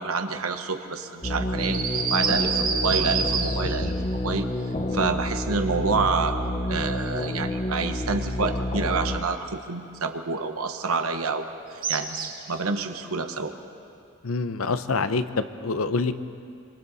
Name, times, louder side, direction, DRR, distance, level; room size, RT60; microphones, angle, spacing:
voice 1, 0.0-1.9 2.1-4.5 4.9-6.4 6.7-13.5, right 4 dB, 85° right, 7 dB, 1.2 m, -28 dB
sound 1, 1.2-9.2, left 1 dB, 30° left, 0.9 m, -29 dB
sound 2, 1.6-3.9 11.8-12.5, right 6 dB, 45° right, 1.8 m, -27 dB
voice 2, 14.2-16.1, left 4 dB, 80° left, 11 dB, 0.8 m, -26 dB
26.0 x 25.0 x 4.1 m, 2.6 s
head